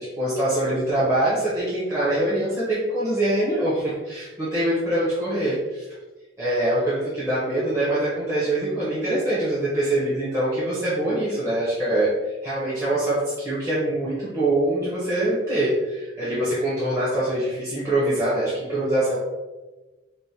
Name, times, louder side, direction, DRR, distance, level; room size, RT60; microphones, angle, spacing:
voice 1, 0.0-5.8 6.4-19.2, right 1 dB, 15° right, -11 dB, 0.8 m, -24 dB
4.8 x 2.1 x 2.7 m, 1.2 s
head